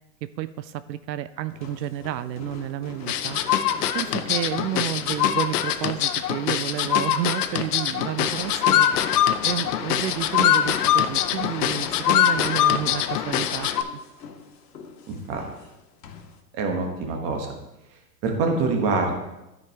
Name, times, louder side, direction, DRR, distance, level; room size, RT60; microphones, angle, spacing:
voice 1, 0.2-3.4 3.9-9.2 9.4-13.8, right 12 dB, 85° right, 14 dB, 0.6 m, -31 dB
sound 1, 1.5-16.4, left 5 dB, 90° left, 1.6 m, -44 dB
sound 2, 3.1-13.8, left 10 dB, 65° left, 0.7 m, -23 dB
voice 2, 15.1-15.4 16.5-17.5 18.2-19.1, right 4 dB, 25° right, 3 dB, 1.2 m, -25 dB
13.0 x 5.0 x 2.9 m, 0.94 s
hypercardioid pair, 155°, 49 cm